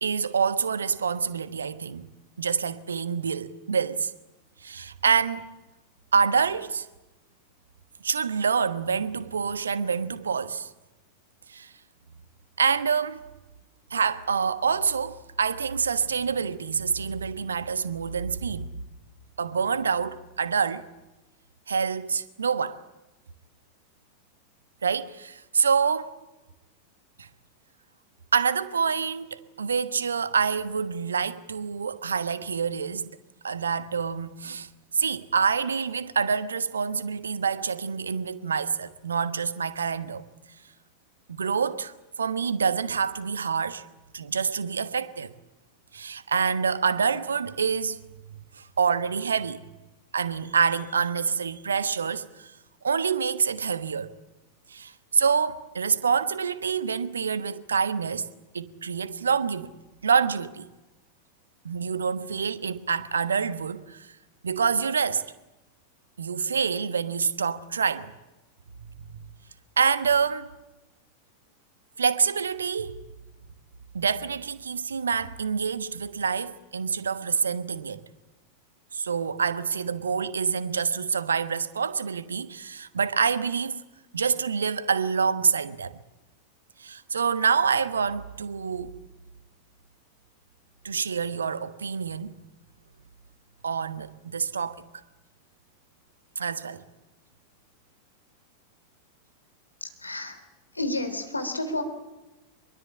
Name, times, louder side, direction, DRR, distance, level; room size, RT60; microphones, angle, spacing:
voice 1, 0.0-2.1 2.4-4.1 4.6-5.5 6.1-6.9 8.0-10.7 11.5-11.7 12.6-13.2 13.9-18.7 19.4-20.8 21.7-22.8 24.8-26.2 27.2-27.3 28.3-33.1 33.4-40.2 41.3-43.8 44.1-45.3 45.9-48.0 48.5-49.6 50.1-52.5 52.8-54.1 54.7-58.3 58.5-59.7 60.0-60.7 61.6-64.1 64.4-65.2 66.2-68.1 69.1-69.2 69.8-70.5 72.0-73.0 73.9-78.0 78.9-83.8 84.1-85.9 86.8-89.0 90.8-92.4 93.6-94.8 96.4-96.8, right 6 dB, 70° right, 1.3 m, -27 dB
voice 2, 99.8-100.4 100.7-101.8, left 1 dB, 85° left, 3.6 m, -30 dB
24.5 x 22.5 x 8.6 m
figure-of-eight pair, 90°, 0 cm